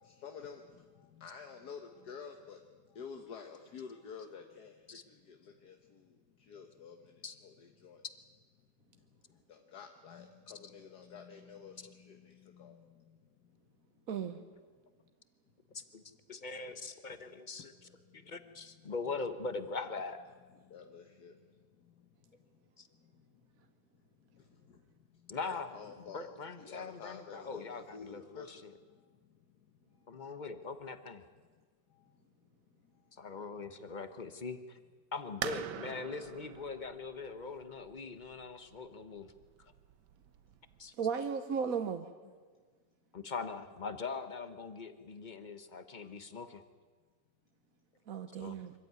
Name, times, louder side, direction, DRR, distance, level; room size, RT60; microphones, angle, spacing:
voice 1, 0.0-8.0 8.6-8.7 8.9-13.9 14.4-14.6 16.6-16.8 17.2-18.9 20.5-23.7 24.1-30.2 31.5-32.3 32.7-33.1 42.2-42.3, left 6 dB, 70° left, 4 dB, 1.8 m, -52 dB
voice 2, 14.1-14.4 41.0-42.1 48.1-48.7, right 6 dB, 60° right, 8 dB, 1.3 m, -35 dB
voice 3, 16.3-17.7 18.1-20.2 22.8-22.9 25.3-25.8 26.1-28.7 30.1-31.2 33.1-34.8 35.1-39.3 39.6-39.7 40.8-40.9 43.1-46.6 48.4-48.6, left 4 dB, 30° left, 10 dB, 1.1 m, -42 dB
sound 1, 35.4-40.9, right 9 dB, 85° right, 1.5 m, -45 dB
24.5 x 15.0 x 9.5 m, 1.5 s
omnidirectional pair, 1.8 m